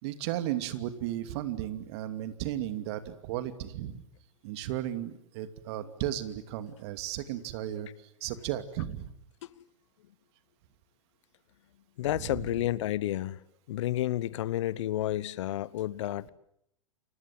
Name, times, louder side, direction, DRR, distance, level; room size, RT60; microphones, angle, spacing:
voice 1, 0.0-4.0 4.4-7.9 8.2-9.1 12.2-12.4, right 12 dB, 55° right, 2.7 m, -34 dB
voice 2, 12.0-13.4 13.7-16.3, left 13 dB, 65° left, 1.1 m, -31 dB
29.5 x 26.0 x 7.8 m
hypercardioid pair, 100°, 16 cm